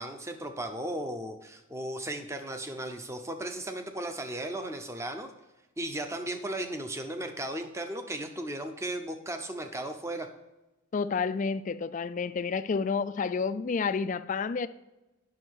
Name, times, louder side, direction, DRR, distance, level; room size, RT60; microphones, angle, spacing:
voice 1, 0.0-5.3 5.8-10.3, right 1 dB, 15° right, 0.7 m, -36 dB
voice 2, 10.9-14.7, left 5 dB, 35° left, 0.3 m, -30 dB
9.7 x 6.2 x 4.6 m
head